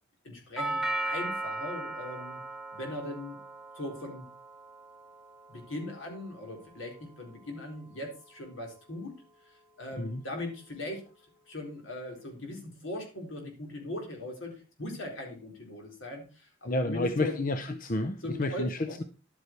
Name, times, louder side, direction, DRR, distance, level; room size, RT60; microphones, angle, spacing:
voice 1, 0.2-2.4 2.7-3.4 3.7-4.3 5.5-9.2 9.8-11.0 11.5-17.5 18.2-19.0, left 1 dB, 75° left, 1 dB, 4.3 m, -39 dB
Doorbell, 0.6-8.6, right 2 dB, ahead, 0.8 m, -39 dB
voice 2, 16.7-19.0, left 2 dB, 45° left, 10 dB, 0.7 m, -30 dB
11.5 x 8.2 x 4.6 m, 0.33 s
head